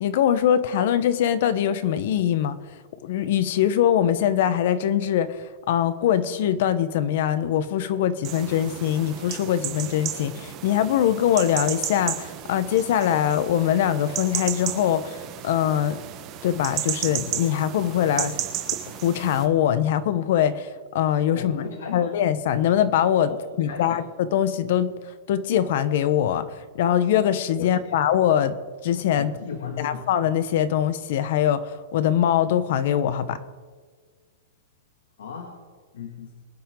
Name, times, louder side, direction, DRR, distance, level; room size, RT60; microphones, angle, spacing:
voice 1, 0.0-2.6 3.0-16.0 16.4-18.3 19.0-20.7 20.9-21.6 21.9-23.3 23.6-24.9 25.3-26.4 26.8-28.6 28.8-29.3 29.8-33.4, left 10 dB, 50° left, 13 dB, 1.0 m, -22 dB
sound 1, 8.2-19.5, right 11 dB, 25° right, 1.3 m, -33 dB
voice 2, 21.3-22.1 23.2-24.0 27.6-28.0 29.2-30.0 35.2-35.5 35.9-36.3, left 5 dB, 85° left, 2 dB, 2.4 m, -36 dB
23.5 x 10.0 x 3.9 m, 1.5 s
supercardioid pair, 165°, 0 cm